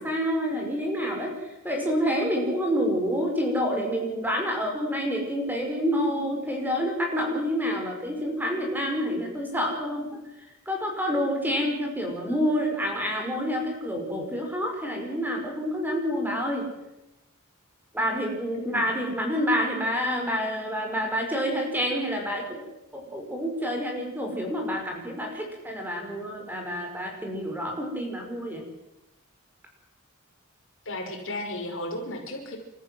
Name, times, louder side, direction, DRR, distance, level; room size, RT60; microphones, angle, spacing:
voice 1, 0.0-16.7 17.9-22.6 22.9-28.6, equal, 10° right, 1 dB, 5.3 m, -28 dB
voice 2, 30.9-32.6, left 1 dB, 60° left, 2 dB, 5.4 m, -34 dB
30.0 x 14.0 x 7.9 m, 0.94 s
head